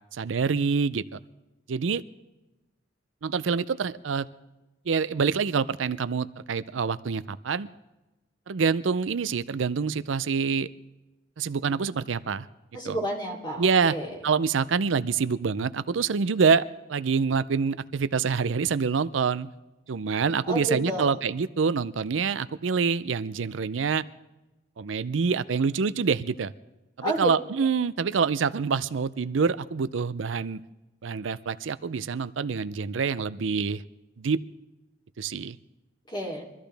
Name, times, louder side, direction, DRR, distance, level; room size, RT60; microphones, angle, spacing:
voice 1, 0.1-1.2 1.7-2.0 3.2-4.3 4.9-7.7 8.5-10.7 11.4-12.5 12.8-13.0 13.6-13.9 14.2-19.5 19.9-24.0 24.8-26.5 27.0-30.6 31.0-33.8 34.2-34.4 35.2-35.6, right 5 dB, 80° right, 15 dB, 0.5 m, -26 dB
voice 2, 12.7-14.2 20.5-21.2 27.0-27.3 36.1-36.5, right 1 dB, 25° left, 0 dB, 3.1 m, -30 dB
24.0 x 13.5 x 3.4 m, 1.0 s
head